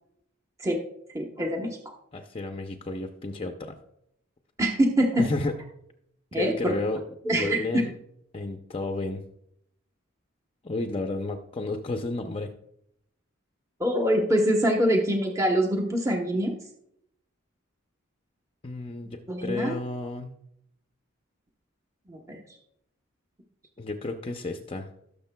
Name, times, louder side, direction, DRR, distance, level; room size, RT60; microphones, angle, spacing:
voice 1, 1.1-1.9 4.6-5.2 6.3-6.7 7.2-7.6 13.8-16.5 19.3-19.8 22.1-22.4, equal, 15° right, 1 dB, 0.9 m, -24 dB
voice 2, 2.1-3.8 5.2-5.6 6.3-7.0 7.3-7.9 8.3-9.2 10.6-12.5 18.6-20.4 23.8-24.9, left 2 dB, 25° left, 4 dB, 0.5 m, -32 dB
17.5 x 6.6 x 2.2 m, 0.75 s
head